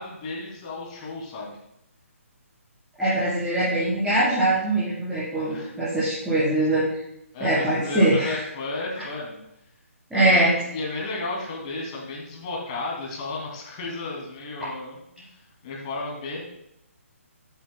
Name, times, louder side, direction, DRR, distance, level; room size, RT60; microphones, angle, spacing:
voice 1, 0.0-1.6 5.5-5.7 7.3-9.4 10.1-10.4 10.7-15.3 15.6-16.4, left 2 dB, 25° left, -2 dB, 2.5 m, -33 dB
voice 2, 3.0-6.8 7.4-8.4 10.1-10.5, right 1 dB, 5° right, -15 dB, 3.8 m, -22 dB
13.0 x 8.1 x 2.2 m, 0.80 s
figure-of-eight pair, 140°, 8 cm